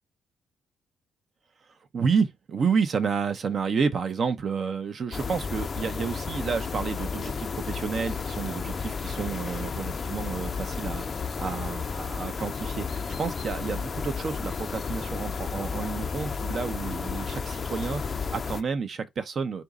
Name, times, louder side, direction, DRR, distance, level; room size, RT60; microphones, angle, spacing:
voice 1, 1.9-19.6, right 5 dB, 50° right, 0.6 m, -30 dB
sound 1, 5.1-18.6, left 5 dB, 40° left, 0.5 m, -32 dB
4.0 x 2.6 x 3.5 m
cardioid pair, 90°, 0 cm